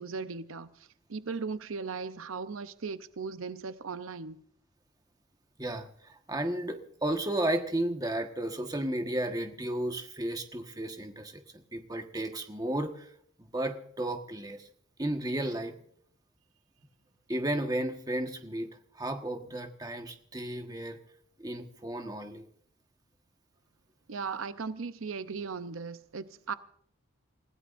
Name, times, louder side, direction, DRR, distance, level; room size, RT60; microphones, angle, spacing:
voice 1, 0.0-4.4 24.1-26.5, right 5 dB, 75° right, 0.6 m, -37 dB
voice 2, 5.6-13.1 13.4-14.7 15.0-15.7 17.3-21.0 21.4-22.4, right 1 dB, 20° right, 1.3 m, -33 dB
28.5 x 15.5 x 2.6 m
head